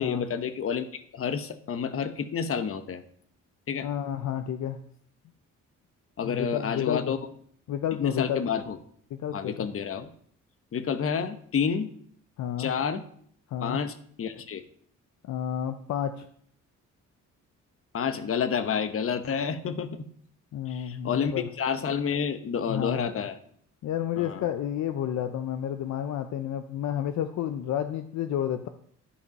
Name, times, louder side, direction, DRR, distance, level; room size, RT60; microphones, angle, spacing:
voice 1, 0.0-3.0 3.7-3.9 6.2-7.2 8.0-8.8 9.3-10.1 10.7-11.9 12.6-13.0 13.6-14.6 17.9-19.9 20.7-21.3 21.6-23.4 24.2-24.5, left 7 dB, 45° left, 11 dB, 1.0 m, -29 dB
voice 2, 3.8-4.8 6.2-7.1 7.7-8.4 9.1-9.7 12.4-12.7 13.5-13.8 15.2-16.3 20.5-21.5 22.7-23.1 23.8-28.7, left 10 dB, 65° left, 9 dB, 0.7 m, -31 dB
11.5 x 5.2 x 5.3 m, 0.63 s
cardioid pair, 90°, 30 cm